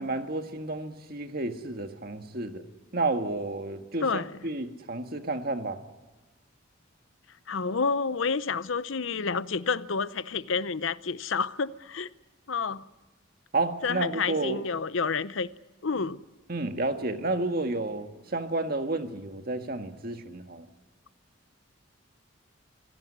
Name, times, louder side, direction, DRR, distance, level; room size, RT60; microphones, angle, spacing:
voice 1, 0.0-2.6 2.9-5.8 13.5-14.6 16.5-20.7, right 2 dB, 50° right, 1.7 m, -31 dB
voice 2, 4.0-4.3 7.5-12.1 12.5-12.9 13.8-15.5 15.8-16.2, left 5 dB, 75° left, 0.7 m, -29 dB
25.5 x 16.5 x 9.8 m
head